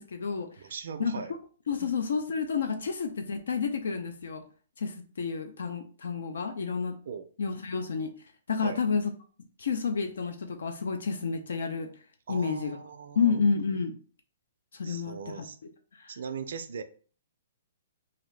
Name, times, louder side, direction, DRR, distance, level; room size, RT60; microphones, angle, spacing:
voice 1, 0.0-0.5 1.0-1.1 1.7-4.4 4.8-7.0 7.4-8.1 8.5-9.1 9.6-11.9 12.3-12.8 13.2-13.9 14.7-15.5, left 5 dB, 80° left, 7 dB, 0.4 m, -30 dB
voice 2, 0.6-1.3 7.1-7.3 8.6-8.8 12.3-13.4 14.8-15.6 16.1-16.8, right 6 dB, 65° right, 8 dB, 0.3 m, -39 dB
2.7 x 2.4 x 3.1 m, 0.40 s
hypercardioid pair, 160°, 0 cm